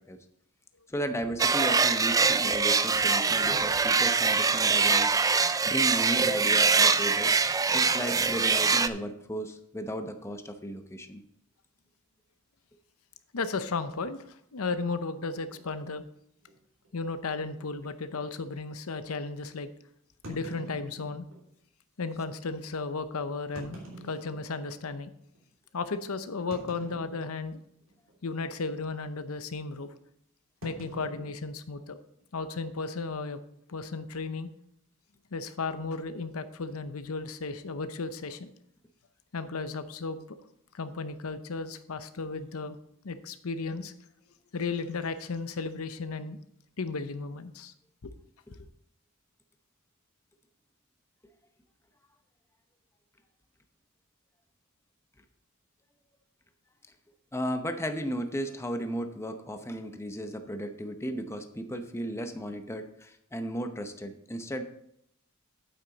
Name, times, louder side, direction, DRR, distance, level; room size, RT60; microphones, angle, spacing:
voice 1, 0.9-5.2 5.6-7.3 7.7-11.2 57.3-64.6, equal, 15° left, 7 dB, 0.7 m, -35 dB
sound 1, 1.4-8.9, right 4 dB, 15° right, 0.3 m, -24 dB
voice 2, 13.3-16.0 16.9-19.7 20.3-21.3 22.0-23.8 24.0-25.1 25.7-27.6 28.2-29.9 30.6-32.0 32.3-33.4 33.7-34.5 35.3-38.5 39.3-40.4 40.7-42.8 43.0-43.9 44.5-46.4 46.8-47.7 48.0-48.1, left 4 dB, 85° left, 11 dB, 0.7 m, -34 dB
sound 2, 15.5-15.7 16.4-16.5 16.8-16.9 17.5-17.7 20.2-21.4 22.3-22.4 23.4-24.8 25.3-25.4 26.5-27.6 27.9-28.2 28.5-28.8 30.6-32.2, right 1 dB, 70° right, 3.0 m, -46 dB
8.7 x 8.6 x 4.0 m, 0.73 s
head